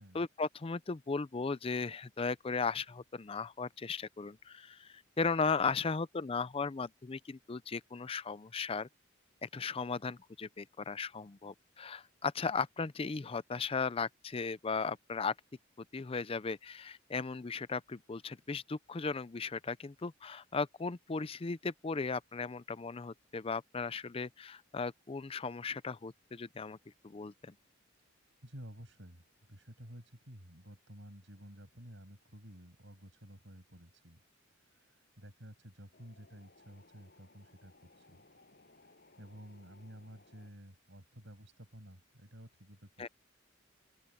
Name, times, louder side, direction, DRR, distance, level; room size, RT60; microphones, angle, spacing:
voice 1, 0.0-8.9 9.4-15.3 15.9-26.8 27.0-27.5 43.0-43.1, left 4 dB, 30° left, 0.5 m, -36 dB
voice 2, 28.4-29.2 29.5-34.2 34.6-38.2 39.2-43.1, equal, 65° right, 7.3 m, -53 dB
Wind, 35.9-40.5, left 2 dB, 50° left, 6.5 m, -63 dB
open air
head